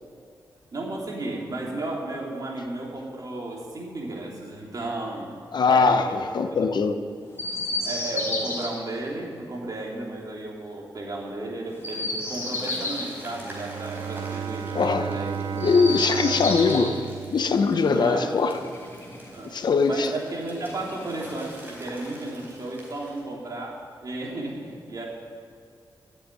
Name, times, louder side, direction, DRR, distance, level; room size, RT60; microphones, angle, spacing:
voice 1, 0.7-5.3 5.6-6.2 6.5-6.7 7.8-15.5 16.0-16.4 17.9-18.3 19.3-19.5 19.9-25.0, right 2 dB, 50° right, -2 dB, 3.5 m, -34 dB
voice 2, 5.5-7.0 14.7-15.1 15.6-17.0 17.3-18.6 19.4-20.1, left 4 dB, 60° left, 8 dB, 0.9 m, -21 dB
Chirp tweet, 7.3-8.7 11.7-13.1 15.5-17.0 18.4-19.5 20.5-21.5, left 2 dB, 30° left, 2.6 m, -32 dB
sound 1, 11.8-23.2, right 1 dB, 25° right, 4.5 m, -47 dB
Bowed string instrument, 13.3-18.2, right 8 dB, 80° right, 0.4 m, -34 dB
13.5 x 7.9 x 9.9 m, 2.2 s
wide cardioid pair, 100°, 8 cm